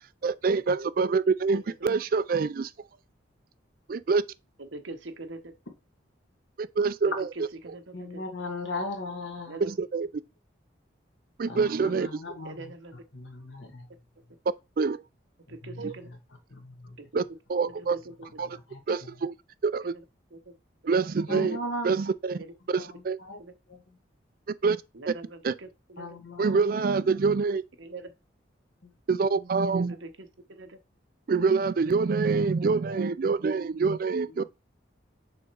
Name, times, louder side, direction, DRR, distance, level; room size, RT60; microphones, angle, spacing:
voice 1, 0.2-2.7 3.9-4.2 6.6-7.3 9.7-10.1 11.4-12.2 14.8-15.0 15.8-15.9 17.1-17.2 17.5-18.0 18.4-18.5 18.9-19.4 19.6-19.9 20.9-21.6 21.8-22.4 22.7-23.2 24.6-24.8 25.1-25.2 25.4-25.5 26.4-27.6 29.1-30.0 31.3-34.4, right 4 dB, 50° right, 0.3 m, -26 dB
voice 2, 4.6-5.5 7.0-7.1 7.6-8.2 9.5-9.7 12.4-13.0 15.5-16.1 17.0-17.2 17.6-18.5 19.8-20.0 20.3-20.5 22.3-22.5 23.4-23.5 24.9-26.2 26.5-26.6 27.8-28.1 29.6-30.8, right 2 dB, 80° right, 1.0 m, -43 dB
voice 3, 7.9-9.6 11.5-12.7 13.1-13.9 15.5-16.2 16.5-17.0 18.5-19.1 21.3-22.0 22.8-23.4 23.7-24.0 26.0-26.8 28.8-28.9 34.4-34.5, left 2 dB, 80° left, 1.8 m, -38 dB
6.3 x 3.6 x 4.6 m
head